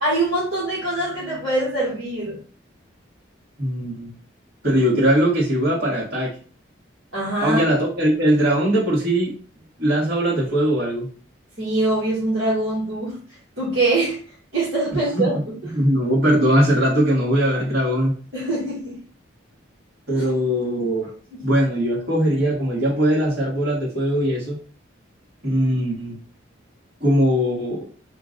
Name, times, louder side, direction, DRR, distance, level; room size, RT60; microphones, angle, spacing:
voice 1, 0.0-2.4 7.1-7.6 11.6-13.2 13.6-14.2 14.5-15.4 18.3-19.0 20.1-20.2, right 2 dB, 65° right, -9 dB, 1.7 m, -23 dB
voice 2, 3.6-4.1 4.6-6.3 7.4-9.3 9.8-11.1 15.1-15.3 15.6-18.1 20.1-21.1 21.4-24.6 25.4-26.1 27.0-27.8, equal, 50° right, -8 dB, 1.9 m, -20 dB
3.6 x 2.6 x 3.8 m, 0.40 s
head